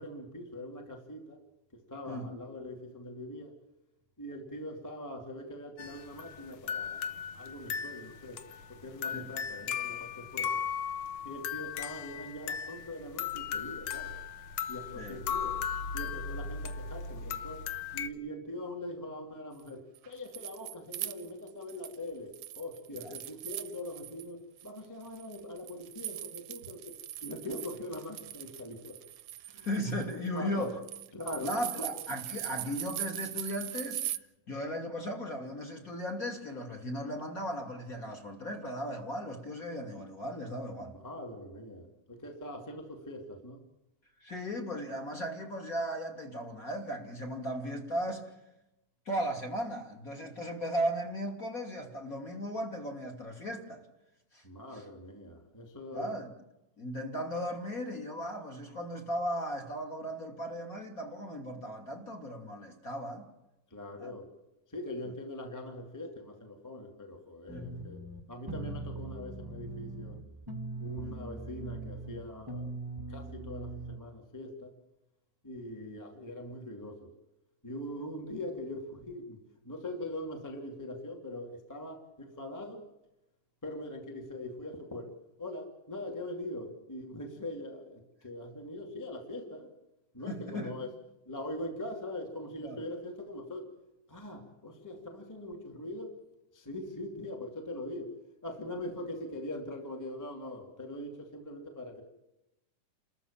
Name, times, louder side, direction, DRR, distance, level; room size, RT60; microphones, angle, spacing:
voice 1, 0.0-1.4 1.9-3.5 4.2-8.4 8.7-10.6 11.2-14.2 14.7-15.6 15.9-17.6 17.9-26.9 27.2-29.0 29.5-29.7 30.1-30.7 31.1-31.9 41.0-41.9 42.2-43.6 54.4-56.2 63.7-64.3 64.7-68.0 68.3-70.2 70.8-72.7 73.1-74.7 75.4-77.1 77.6-79.4 79.6-82.8 83.6-85.1 85.4-89.7 90.1-90.9 91.2-93.7 94.1-96.1 96.5-98.2 98.4-102.0, left 1 dB, 5° left, 2 dB, 2.1 m, -42 dB
sound 1, 5.8-18.1, left 7 dB, 85° left, 1.1 m, -37 dB
sound 2, 19.9-22.0 22.3-24.3 24.6-34.2, right 13 dB, 70° right, 1.8 m, -41 dB
voice 2, 29.6-30.8 31.4-34.2 34.5-40.9 44.2-48.3 49.0-53.8 54.3-54.4 54.7-54.9 55.9-56.3 56.8-63.3 64.0-64.2 67.5-67.7 71.0-71.2 90.3-90.7 92.6-92.8, equal, 25° left, 2 dB, 2.9 m, -36 dB
sound 3, 67.5-74.0, right 2 dB, 15° right, 0.8 m, -41 dB
30.0 x 14.0 x 7.4 m, 0.92 s
omnidirectional pair, 3.8 m